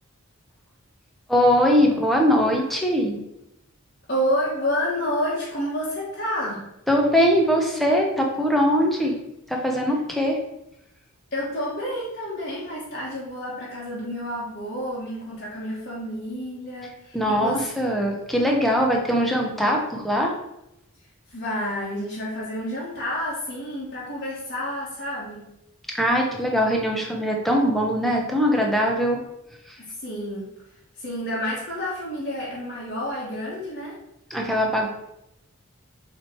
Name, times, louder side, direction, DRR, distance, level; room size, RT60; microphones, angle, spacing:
voice 1, 1.3-3.2 6.9-9.2 9.5-10.4 17.1-20.3 25.9-29.2 29.7-29.8 34.3-34.9, equal, ahead, 0 dB, 0.9 m, -21 dB
voice 2, 4.1-6.6 11.3-17.7 21.3-25.4 29.8-30.5 30.9-33.9, equal, 45° left, -7 dB, 1.5 m, -29 dB
7.4 x 3.4 x 4.5 m, 0.85 s
head